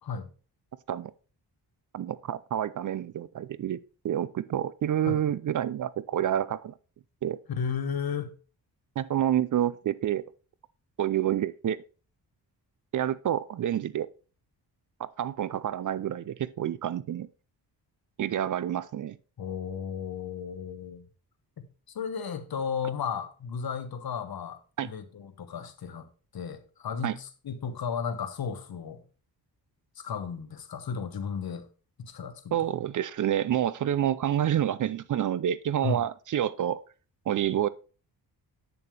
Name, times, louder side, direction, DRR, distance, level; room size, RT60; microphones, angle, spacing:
voice 1, 1.9-3.8 4.0-6.7 7.2-7.4 9.0-10.3 11.0-11.8 12.9-14.1 15.2-17.3 18.2-19.2 24.8-24.9 27.0-27.2 32.5-36.8 37.3-37.7, right 10 dB, 50° right, 0.4 m, -28 dB
voice 2, 7.5-8.3 19.4-21.0 21.6-26.1 26.3-29.0 30.0-31.7 32.0-32.6 35.8-36.0, left 6 dB, 60° left, 1.2 m, -34 dB
8.5 x 6.9 x 3.3 m
cardioid pair, 105°, 41 cm